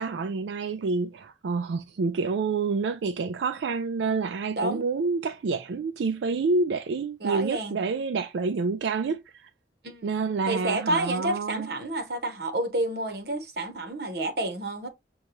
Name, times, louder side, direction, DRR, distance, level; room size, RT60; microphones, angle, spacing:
voice 1, 0.0-9.2 10.0-11.7, right 4 dB, 90° right, 0.4 m, -28 dB
voice 2, 7.2-7.8 9.8-10.1 10.5-14.9, right 2 dB, 65° right, 1.0 m, -29 dB
6.3 x 2.3 x 3.0 m
head